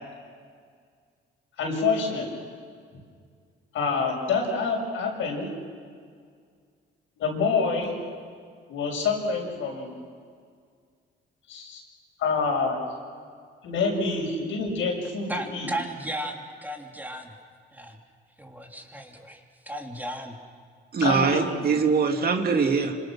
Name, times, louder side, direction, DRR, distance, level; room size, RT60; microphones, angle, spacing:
voice 1, 1.6-2.3 3.7-5.5 7.2-7.9 8.7-9.9 11.5-11.8 12.2-12.8 13.6-15.7 21.0-21.7, left 4 dB, 80° left, 0 dB, 7.1 m, -27 dB
voice 2, 15.3-17.3 17.7-18.0 18.4-20.4, right 1 dB, 10° right, 1 dB, 3.2 m, -35 dB
voice 3, 20.9-23.0, right 5 dB, 50° right, 4 dB, 2.5 m, -23 dB
27.0 x 26.0 x 6.3 m, 2.1 s
cardioid pair, 90°, 20 cm